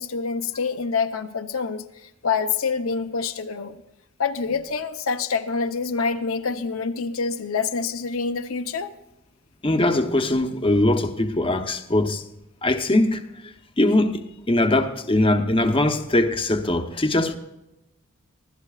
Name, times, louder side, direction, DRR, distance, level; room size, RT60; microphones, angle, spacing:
voice 1, 0.0-1.9 2.2-3.8 4.2-8.9, left 5 dB, 75° left, 0.8 m, -26 dB
voice 2, 9.6-12.2 12.6-17.4, left 1 dB, 25° left, 0.9 m, -21 dB
25.0 x 16.0 x 2.4 m
head